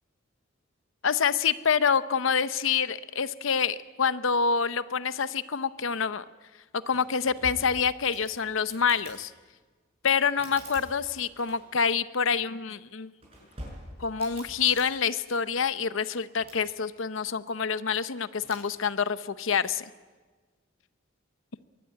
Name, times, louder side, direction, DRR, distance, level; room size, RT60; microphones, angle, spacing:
voice 1, 1.0-6.2 6.9-9.3 10.0-13.1 14.0-19.8, left 6 dB, 75° left, 14 dB, 0.7 m, -27 dB
sound 1, 6.9-9.2 10.2-11.9 13.0-14.9 16.2-16.7 18.4-18.7, right 1 dB, 30° right, 7.1 m, -46 dB
23.0 x 16.5 x 9.6 m, 1.4 s
head